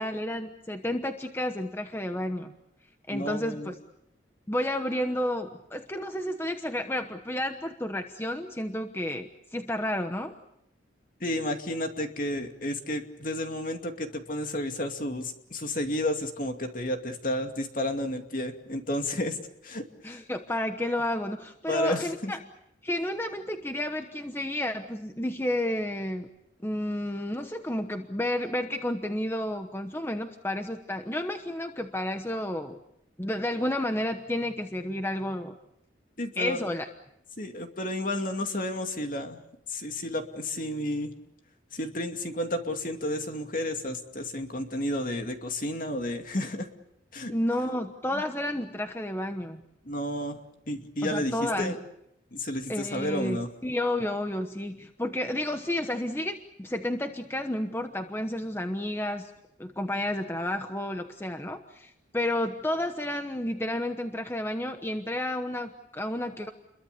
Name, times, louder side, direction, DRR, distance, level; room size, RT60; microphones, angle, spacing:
voice 1, 0.0-2.5 3.1-3.7 4.5-10.4 20.0-22.4 22.8-26.3 26.6-32.8 33.2-35.6 36.4-36.9 47.3-49.6 51.0-51.7 52.7-59.3 59.6-66.5, left 1 dB, 10° left, 6 dB, 1.1 m, -31 dB
voice 2, 3.1-3.7 11.2-19.4 19.6-20.2 21.7-22.3 36.2-36.6 37.4-39.4 39.7-41.1 41.7-46.7 47.1-47.3 48.1-48.2 49.8-50.4 50.7-51.8 52.3-53.5, left 1 dB, 45° left, 5 dB, 2.5 m, -31 dB
29.5 x 22.5 x 6.9 m, 0.79 s
head